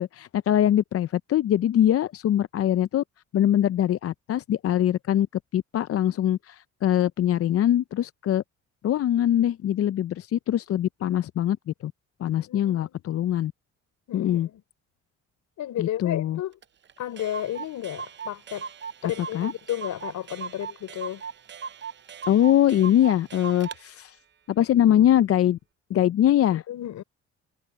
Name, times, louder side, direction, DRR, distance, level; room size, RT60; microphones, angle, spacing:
voice 1, 0.0-3.0 3.3-5.3 5.5-8.4 8.8-11.9 12.2-13.5 14.1-14.5 15.8-16.4 19.3-19.5 22.3-24.2 24.5-25.6 25.9-26.6, left 11 dB, 50° left, 0.5 m, -22 dB
voice 2, 12.3-13.0 14.1-14.6 15.6-16.5 17.0-18.7 19.0-21.2 26.5-27.0, left 12 dB, 75° left, 4.0 m, -33 dB
Clock, 16.6-16.7 16.9-17.0 17.2-23.8, right 6 dB, 40° right, 0.7 m, -38 dB
cardioid pair, 90°, 30 cm